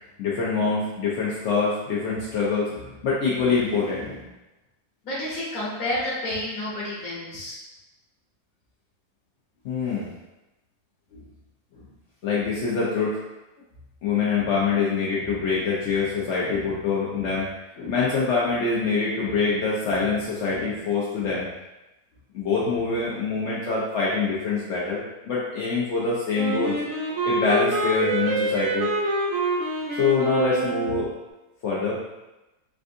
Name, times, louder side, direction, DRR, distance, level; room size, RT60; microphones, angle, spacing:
voice 1, 0.2-4.2 9.6-10.1 12.2-13.2 14.0-17.5 17.8-21.5 22.3-26.8 27.2-28.9 30.0-31.1 31.6-32.0, left 4 dB, 75° left, -6 dB, 0.6 m, -25 dB
voice 2, 5.0-7.6, left 1 dB, 60° left, -10 dB, 1.3 m, -30 dB
Wind instrument woodwind instrument, 26.4-31.1, right 2 dB, 60° right, 0.9 m, -26 dB
3.5 x 2.5 x 2.5 m, 1.0 s
omnidirectional pair, 1.8 m